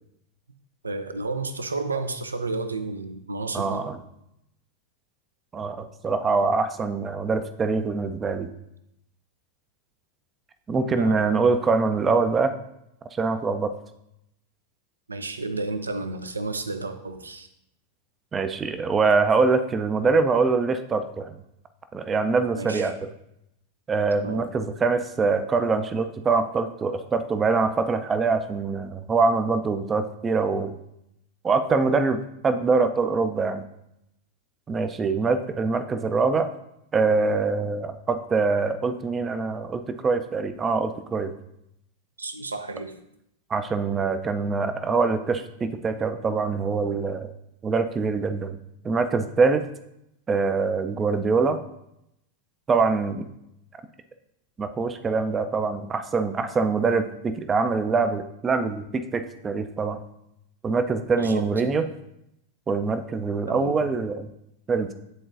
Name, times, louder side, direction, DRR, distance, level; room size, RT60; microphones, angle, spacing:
voice 1, 0.8-3.9 11.0-11.4 15.1-17.5 22.6-22.9 24.1-24.4 42.2-43.0 61.2-61.6 63.5-63.8, right 3 dB, 75° right, 8 dB, 0.5 m, -32 dB
voice 2, 3.5-4.0 5.5-8.5 10.7-12.5 13.2-13.7 18.3-21.3 21.9-22.9 23.9-30.8 31.4-33.6 34.7-36.5 36.9-41.3 43.5-47.3 47.6-48.6 48.8-49.6 50.3-51.6 52.7-53.2 54.6-60.0 60.6-61.8 62.7-64.3 64.7-64.9, right 4 dB, 20° right, 9 dB, 0.4 m, -24 dB
9.6 x 3.8 x 2.5 m, 0.81 s
figure-of-eight pair, 90°, 0 cm